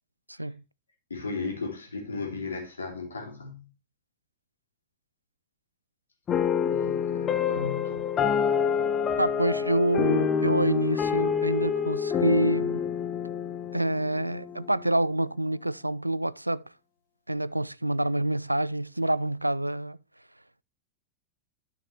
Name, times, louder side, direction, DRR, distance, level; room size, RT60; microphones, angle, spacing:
voice 1, 0.3-0.6 9.2-12.8 13.7-16.6 17.3-20.0, right 1 dB, 85° right, 0.3 m, -27 dB
voice 2, 1.1-3.7 6.7-8.5, left 4 dB, 75° left, 3.1 m, -36 dB
sound 1, 6.3-14.8, left 7 dB, 25° left, 0.8 m, -27 dB
12.0 x 5.8 x 2.8 m
figure-of-eight pair, 90°, 0 cm